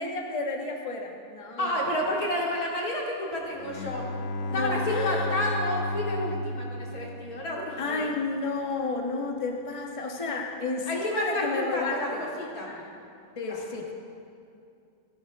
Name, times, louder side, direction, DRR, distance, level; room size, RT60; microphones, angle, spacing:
voice 1, 0.0-1.9 4.4-5.4 7.8-12.2 12.7-12.9 13.4-13.9, left 3 dB, 25° left, 1 dB, 1.2 m, -32 dB
voice 2, 1.6-4.1 4.5-8.1 10.9-12.7 13.5-13.6, left 1 dB, 70° left, -3 dB, 3.1 m, -30 dB
Bowed string instrument, 3.6-7.9, left 1 dB, 55° left, 0.9 m, -33 dB
28.5 x 11.5 x 3.6 m, 2.5 s
omnidirectional pair, 1.6 m